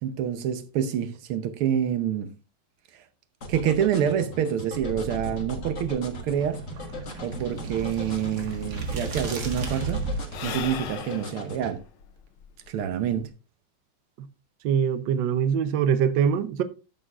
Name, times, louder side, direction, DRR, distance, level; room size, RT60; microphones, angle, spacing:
voice 1, 0.0-2.3 3.5-6.6 7.2-10.0 10.4-11.8 12.7-13.3, right 9 dB, 85° right, 1.8 m, -27 dB
sound 1, 3.4-11.7, left 2 dB, 40° left, 1.5 m, -39 dB
sound 2, 4.7-10.4, right 3 dB, 50° right, 2.0 m, -34 dB
Sigh / Breathing, 8.3-8.4 8.5-13.3, left 8 dB, 80° left, 1.8 m, -39 dB
voice 2, 14.6-16.6, right 7 dB, 65° right, 1.3 m, -23 dB
12.5 x 6.5 x 2.4 m
omnidirectional pair, 2.3 m